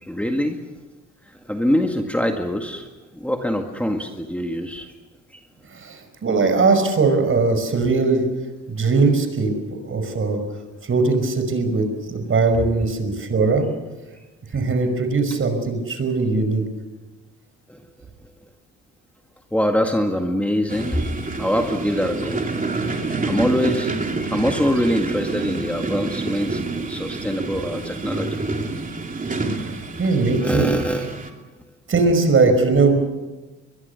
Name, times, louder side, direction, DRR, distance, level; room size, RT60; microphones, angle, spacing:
voice 1, 0.0-0.6 1.4-2.9 3.1-4.9 5.3-5.4 17.7-17.8 19.5-21.1 21.4-22.5 22.7-22.8 23.2-28.4 30.4-31.2, equal, 5° left, 3 dB, 2.0 m, -24 dB
voice 2, 5.7-8.2 8.7-9.5 9.8-10.4 10.8-13.7 14.5-16.6 29.7-30.7 31.9-33.0, right 3 dB, 45° right, 7 dB, 5.4 m, -20 dB
sound 1, 20.7-31.3, right 3 dB, 25° right, 3.1 m, -28 dB
22.5 x 22.0 x 6.9 m, 1.2 s
cardioid pair, 90°, 30 cm